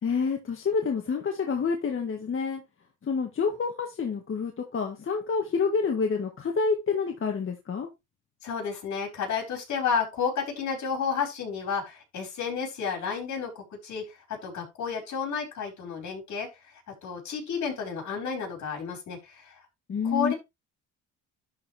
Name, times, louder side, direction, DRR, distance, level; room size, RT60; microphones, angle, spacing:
voice 1, 0.0-2.6 3.0-7.9 19.9-20.3, left 5 dB, 45° left, 2 dB, 1.7 m, -28 dB
voice 2, 8.4-16.7 17.0-19.6 20.0-20.3, left 6 dB, 65° left, 1 dB, 5.1 m, -31 dB
11.5 x 4.7 x 3.4 m, 0.23 s
cardioid pair, 90°, 30 cm